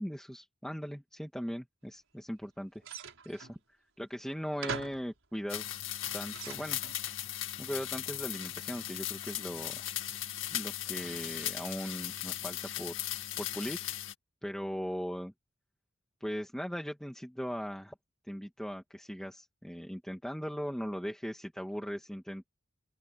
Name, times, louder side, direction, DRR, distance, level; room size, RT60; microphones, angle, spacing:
voice 1, 0.0-2.8 3.3-3.6 4.0-5.6 6.1-6.8 7.6-9.9 10.5-13.0 13.4-13.8 14.4-15.3 16.2-17.9 18.3-22.5, equal, 5° left, 2.0 m, -39 dB
sound 1, 2.8-3.6 4.3-4.4 4.6-5.1 5.8-7.0, right 5 dB, 80° right, 5.2 m, -42 dB
sound 2, 5.5-14.1, left 12 dB, 75° left, 2.1 m, -38 dB
open air
head